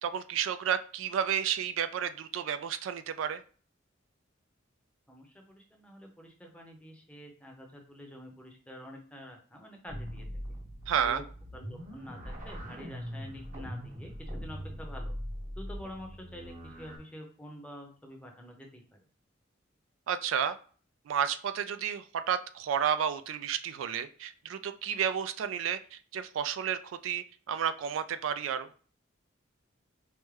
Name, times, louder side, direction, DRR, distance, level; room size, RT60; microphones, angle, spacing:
voice 1, 0.0-3.4 10.9-11.2 20.1-20.6 21.1-28.7, right 8 dB, 85° right, 12 dB, 0.3 m, -31 dB
voice 2, 5.1-10.3 11.0-11.2 11.5-15.1 15.6-18.8, equal, 5° left, 1 dB, 0.6 m, -47 dB
sound 1, 9.9-17.0, equal, 45° right, 0.9 m, -41 dB
4.8 x 2.1 x 3.1 m, 0.42 s
head